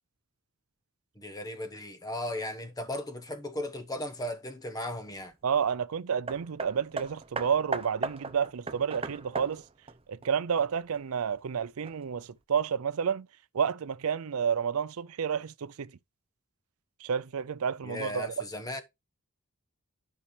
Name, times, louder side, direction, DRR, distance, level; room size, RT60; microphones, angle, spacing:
voice 1, 1.1-5.3 17.8-18.8, left 1 dB, 15° left, 1.2 m, -36 dB
voice 2, 5.4-9.6 10.1-13.3 13.5-15.9 17.0-18.3, right 7 dB, 75° right, 0.5 m, -30 dB
Hammer, 6.3-11.0 11.8-11.9, right 3 dB, 25° right, 0.7 m, -37 dB
11.0 x 5.6 x 3.3 m
head